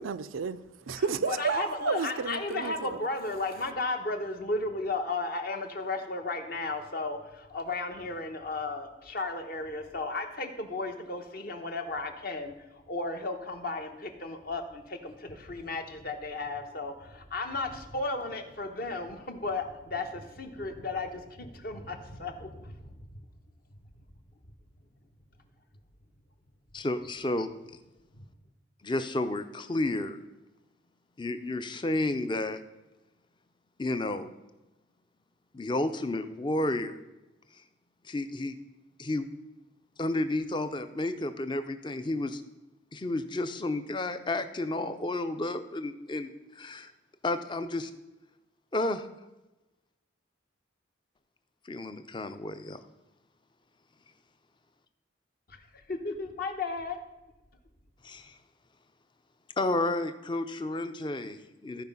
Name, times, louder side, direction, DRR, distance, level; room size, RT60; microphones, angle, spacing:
voice 1, 0.0-3.0, right 5 dB, 90° right, 0.5 m, -32 dB
voice 2, 1.3-23.1 28.2-28.3 55.5-57.0, left 3 dB, 50° left, 1.0 m, -34 dB
voice 3, 26.7-27.8 28.8-30.2 31.2-32.6 33.8-34.3 35.5-37.0 38.0-38.6 39.0-39.3 40.0-42.4 42.9-46.9 47.2-47.9 48.7-49.1 51.6-52.8 58.0-58.4 59.6-61.8, left 2 dB, 25° left, 0.5 m, -31 dB
14.0 x 5.0 x 5.4 m
head